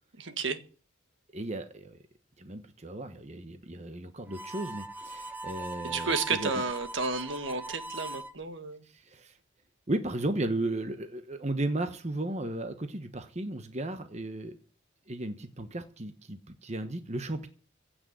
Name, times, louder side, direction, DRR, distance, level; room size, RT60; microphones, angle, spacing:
voice 1, 0.2-0.6 5.8-8.8, right 4 dB, 60° right, 10 dB, 1.6 m, -32 dB
voice 2, 1.3-2.0 2.4-6.5 8.8-9.4 9.9-14.6 15.1-17.5, right 1 dB, 35° right, 8 dB, 1.1 m, -35 dB
Harmonica, 4.3-8.3, right 2 dB, 10° right, 1.2 m, -40 dB
16.0 x 6.3 x 9.7 m, 0.41 s
head